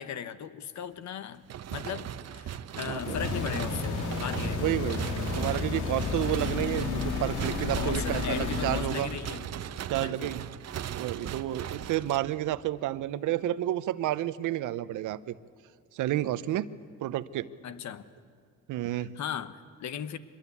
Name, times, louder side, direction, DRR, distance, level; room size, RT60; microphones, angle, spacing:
voice 1, 0.0-1.4 1.7-4.7 7.7-9.5 10.0-10.4 17.6-18.0 19.1-20.2, left 8 dB, 65° left, 13 dB, 1.3 m, -37 dB
sound 1, 1.5-12.7, right 10 dB, 55° right, 0.9 m, -38 dB
sound 2, 2.9-9.0, left 4 dB, 85° left, 3.8 m, -32 dB
voice 2, 4.6-5.1 5.4-9.1 9.9-10.5 11.0-15.4 15.9-16.7 17.0-17.5 18.7-19.1, right 13 dB, 85° right, 16 dB, 0.9 m, -30 dB
24.5 x 21.5 x 8.4 m, 2.2 s
cardioid pair, 90°, 30 cm